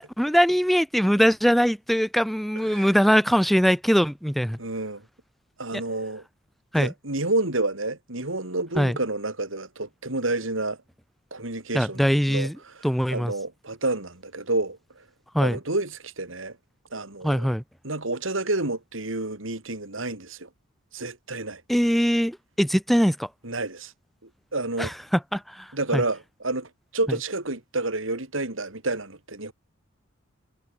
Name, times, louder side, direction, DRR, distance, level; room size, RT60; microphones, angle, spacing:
voice 1, 0.0-4.6 5.7-5.8 6.7-6.9 8.8-9.0 11.7-12.6 12.8-13.3 15.3-15.6 17.2-17.6 21.7-23.3 24.8-25.7 25.9-26.0, equal, ahead, 2.5 m, -22 dB
voice 2, 2.6-2.9 4.6-5.0 5.6-6.2 6.7-10.8 11.3-15.0 15.4-16.6 16.9-17.5 17.8-20.5 20.9-21.6 23.4-23.9 24.5-24.9 25.7-29.5, right 2 dB, 85° right, 4.3 m, -29 dB
head